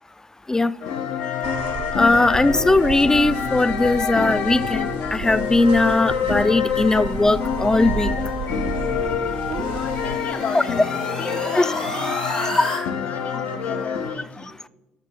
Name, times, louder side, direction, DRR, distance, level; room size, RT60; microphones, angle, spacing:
sound 1, 0.8-14.2, left 7 dB, 60° left, 0.8 m, -27 dB
sound 2, 1.4-10.2, right 7 dB, 65° right, 0.8 m, -33 dB
voice 1, 2.0-4.9 5.1-8.1 11.6-11.7, left 2 dB, 15° left, 15 dB, 0.5 m, -19 dB
sound 3, 8.8-12.8, left 1 dB, 90° left, 1.5 m, -31 dB
voice 2, 9.7-10.8 11.2-14.6, left 5 dB, 45° left, 9 dB, 1.3 m, -35 dB
11.0 x 6.7 x 6.0 m, 0.98 s
figure-of-eight pair, 45°, 4 cm